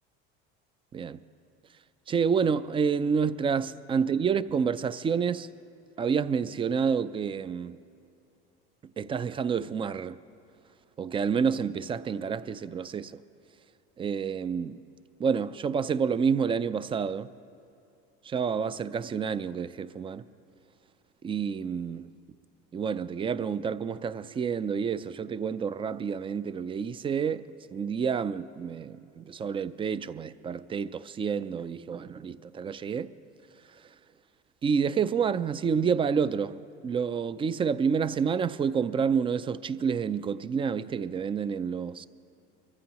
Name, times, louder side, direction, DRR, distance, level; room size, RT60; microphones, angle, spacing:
voice 1, 2.1-5.5 6.0-7.8 9.0-10.2 11.0-13.2 14.0-14.8 15.2-17.3 18.2-20.2 21.2-22.1 22.7-27.4 27.7-33.1 34.6-42.1, right 6 dB, 20° right, 0.3 m, -29 dB
23.5 x 14.5 x 2.9 m
supercardioid pair, 105°, 29 cm